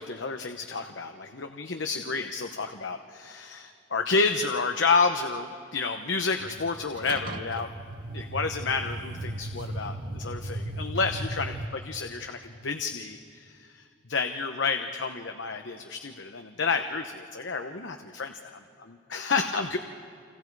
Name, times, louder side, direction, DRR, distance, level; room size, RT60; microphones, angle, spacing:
voice 1, 0.0-7.7 8.1-11.5 11.8-13.8 14.1-18.5 18.8-19.8, left 4 dB, 75° left, 6 dB, 0.9 m, -30 dB
sound 1, 6.4-11.7, right 1 dB, 50° right, 1.0 m, -36 dB
29.5 x 25.5 x 4.8 m, 2.5 s
head